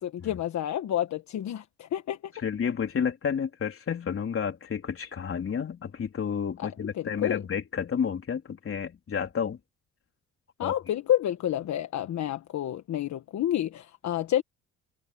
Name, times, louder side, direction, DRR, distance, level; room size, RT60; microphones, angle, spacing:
voice 1, 0.0-2.3 6.6-6.7 6.9-7.4 10.6-14.4, left 11 dB, 70° left, 1.4 m, -29 dB
voice 2, 2.4-9.6 10.6-10.7, left 7 dB, 45° left, 3.7 m, -31 dB
cardioid pair, 90°, 30 cm